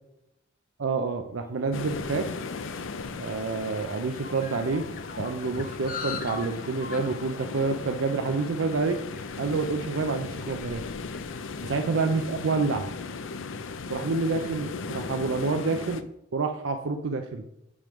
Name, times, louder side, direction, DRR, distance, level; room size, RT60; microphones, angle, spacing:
voice 1, 0.8-2.2 3.2-4.9 5.2-9.0 9.4-10.8 11.6-12.9 13.9-16.0 16.3-17.4, right 4 dB, 80° right, 5 dB, 0.5 m, -28 dB
sound 1, 1.7-16.0, left 4 dB, 75° left, 0.5 m, -37 dB
sound 2, 1.7-12.3, left 5 dB, 45° left, 0.7 m, -44 dB
8.5 x 3.6 x 5.2 m, 0.81 s
head